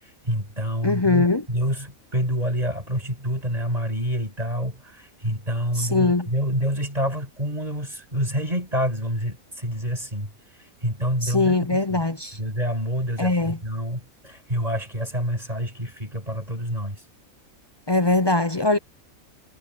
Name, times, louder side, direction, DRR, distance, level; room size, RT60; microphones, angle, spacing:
voice 1, 0.2-10.3 10.6-12.0 12.3-17.0, equal, 25° right, 8.0 m, -27 dB
voice 2, 0.8-1.4 5.8-6.3 11.2-12.4 13.2-13.6 17.9-18.8, left 2 dB, 30° left, 0.4 m, -21 dB
omnidirectional pair, 1.5 m